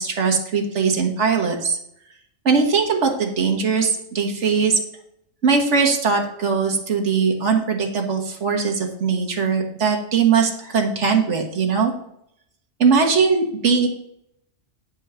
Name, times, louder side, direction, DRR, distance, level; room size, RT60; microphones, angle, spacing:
voice 1, 0.0-1.8 2.5-4.8 5.4-11.9 12.8-13.9, right 5 dB, 65° right, 2 dB, 1.8 m, -20 dB
9.7 x 4.6 x 6.8 m, 0.73 s
omnidirectional pair, 1.3 m